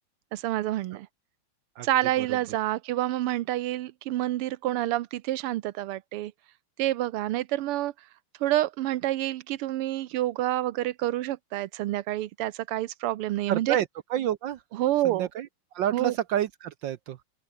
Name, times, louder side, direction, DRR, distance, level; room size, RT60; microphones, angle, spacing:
voice 1, 0.3-1.1 1.8-6.3 6.8-7.9 8.4-13.8 14.7-15.3 15.9-16.2, right 15 dB, 85° right, 1.7 m, -28 dB
voice 2, 13.5-13.8 14.1-14.6 15.0-15.5 15.7-17.2, right 11 dB, 65° right, 1.3 m, -28 dB
open air
omnidirectional pair, 2.4 m